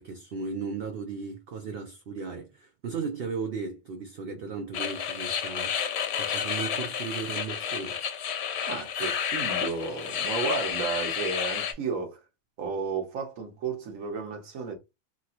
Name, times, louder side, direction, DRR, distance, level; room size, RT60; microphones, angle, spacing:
voice 1, 0.0-8.0, right 5 dB, 60° right, 0.6 m, -36 dB
sound 1, 4.7-11.7, left 8 dB, 60° left, 0.8 m, -31 dB
voice 2, 8.7-12.2 12.6-14.7, right 4 dB, 80° right, 1.3 m, -33 dB
2.9 x 2.8 x 2.8 m
omnidirectional pair, 1.4 m